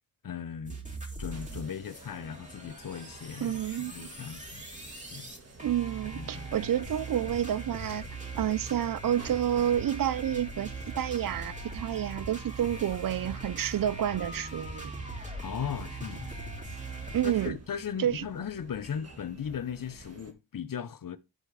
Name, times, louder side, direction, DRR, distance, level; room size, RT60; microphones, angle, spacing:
voice 1, 0.2-0.8 1.2-4.6 5.1-5.3 6.2-6.5 15.4-16.3 17.2-21.2, left 8 dB, 55° left, 0.9 m, -37 dB
sound 1, 0.6-1.6 1.9-17.5, right 2 dB, 20° right, 3.3 m, -41 dB
sound 2, 1.3-20.3, right 3 dB, 40° right, 1.8 m, -51 dB
voice 2, 3.4-3.9 5.6-8.1 8.4-14.9 17.1-17.5 18.0-18.2, right 10 dB, 55° right, 0.5 m, -29 dB
12.0 x 4.5 x 3.3 m
cardioid pair, 65°, 40 cm